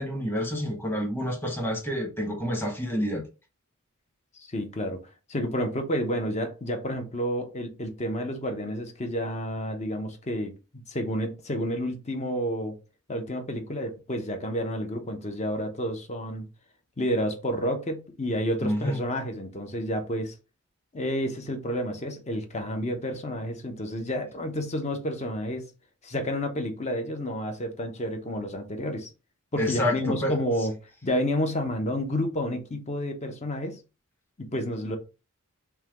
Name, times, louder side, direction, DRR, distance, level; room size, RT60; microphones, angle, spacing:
voice 1, 0.0-3.2 18.6-19.0 29.6-30.3, left 1 dB, 10° left, 1.1 m, -28 dB
voice 2, 4.4-5.0 5.3-10.5 10.9-12.8 13.1-16.4 17.0-20.3 20.9-25.7 26.0-29.1 29.5-30.7 31.0-33.8 34.4-35.0, equal, 30° left, 0.8 m, -30 dB
5.5 x 2.2 x 3.0 m
head